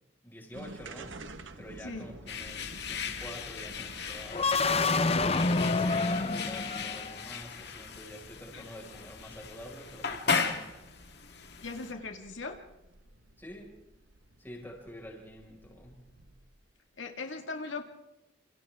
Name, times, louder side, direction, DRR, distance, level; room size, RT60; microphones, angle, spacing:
voice 1, 0.2-1.3 1.6-4.6 5.6-10.9 13.4-13.8 14.4-16.1, equal, 10° left, -1 dB, 5.4 m, -47 dB
sound 1, 0.5-16.7, right 2 dB, 80° right, 1.5 m, -51 dB
sound 2, 2.3-11.9, left 5 dB, 60° left, 2.0 m, -37 dB
sound 3, 4.3-7.3, left 3 dB, 30° left, 0.7 m, -27 dB
voice 2, 11.6-12.6 17.0-17.8, left 3 dB, 85° left, 3 dB, 2.1 m, -39 dB
29.5 x 27.5 x 3.7 m, 0.95 s
head